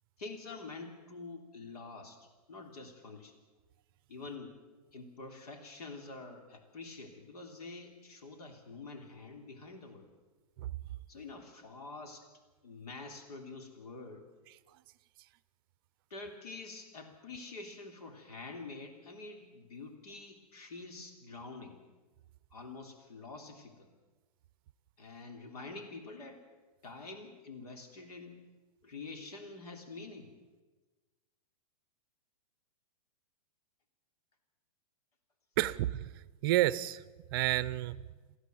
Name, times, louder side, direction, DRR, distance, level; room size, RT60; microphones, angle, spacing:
voice 1, 0.2-3.4 4.1-4.6 4.9-10.1 11.1-12.3 12.6-14.3 16.1-21.8 22.5-23.9 25.0-26.4 26.8-28.4 28.8-30.3, left 3 dB, 85° left, 4 dB, 3.3 m, -47 dB
voice 2, 35.6-37.0 37.3-38.0, right 15 dB, 35° right, 18 dB, 0.6 m, -30 dB
23.5 x 15.5 x 7.8 m, 1.3 s
hypercardioid pair, 160°, 19 cm